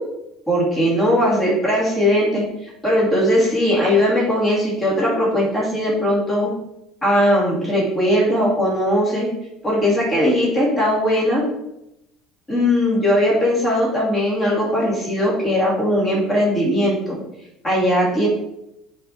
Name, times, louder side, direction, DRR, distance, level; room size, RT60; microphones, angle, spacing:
voice 1, 0.5-2.4 2.8-6.5 7.0-9.3 9.6-11.4 12.5-17.2 17.6-18.3, equal, 15° left, -5 dB, 2.7 m, -19 dB
8.1 x 4.3 x 4.2 m, 0.83 s
cardioid pair, 175°, 0 cm